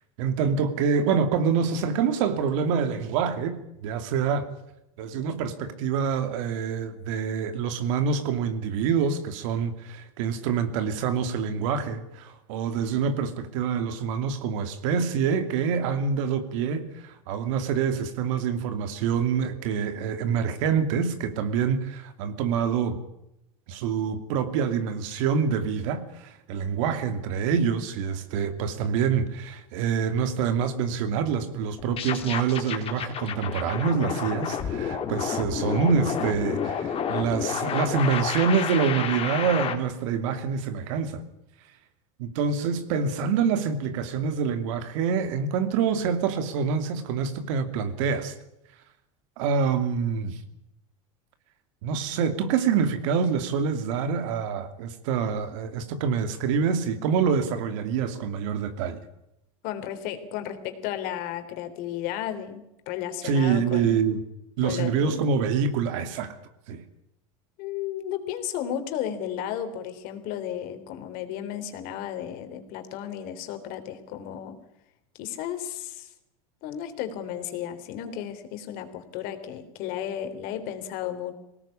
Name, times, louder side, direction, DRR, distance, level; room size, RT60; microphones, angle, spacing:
voice 1, 0.2-4.5 5.0-23.0 23.7-41.2 42.2-48.3 49.4-50.4 51.8-59.0 63.2-64.2 64.6-66.4 66.7-66.8, right 6 dB, 70° right, 2.7 m, -26 dB
sound 1, 31.8-39.8, left 8 dB, 35° left, 3.2 m, -30 dB
voice 2, 59.6-64.0 64.6-65.3 67.6-74.6 75.2-76.1 76.6-81.3, left 10 dB, 60° left, 3.5 m, -34 dB
21.0 x 18.0 x 8.6 m
supercardioid pair, 110°, 17 cm